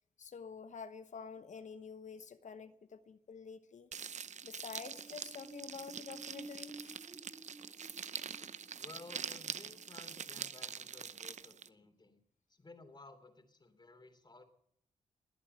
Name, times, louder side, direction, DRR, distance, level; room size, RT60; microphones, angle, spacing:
voice 1, 0.2-3.9 4.4-7.0, left 6 dB, 60° left, 1.0 m, -48 dB
sound 1, 3.9-11.7, right 7 dB, 55° right, 0.8 m, -45 dB
sound 2, 4.8-11.0 11.4-11.5, right 2 dB, 30° right, 1.8 m, -55 dB
voice 2, 8.8-12.2 12.5-14.4, left 3 dB, 30° left, 3.2 m, -56 dB
21.0 x 8.5 x 8.0 m
supercardioid pair, 55°, 14 cm